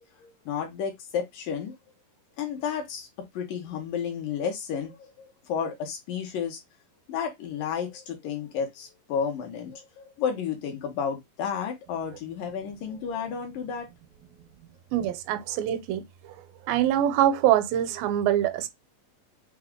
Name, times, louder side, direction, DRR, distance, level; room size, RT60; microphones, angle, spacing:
voice 1, 0.2-1.8 2.4-3.1 3.3-6.6 7.1-14.4, left 7 dB, 75° left, 2.6 m, -32 dB
voice 2, 14.9-16.0 16.7-18.7, right 11 dB, 85° right, 2.4 m, -24 dB
5.9 x 2.3 x 3.6 m
omnidirectional pair, 4.1 m